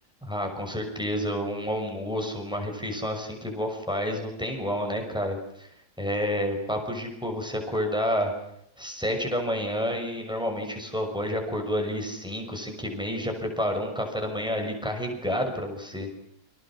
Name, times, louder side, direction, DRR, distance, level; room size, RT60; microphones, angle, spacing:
voice 1, 0.3-5.7 6.0-8.3 8.8-16.1, equal, 5° right, 3 dB, 6.3 m, -29 dB
30.0 x 25.5 x 6.3 m, 0.76 s
omnidirectional pair, 1.7 m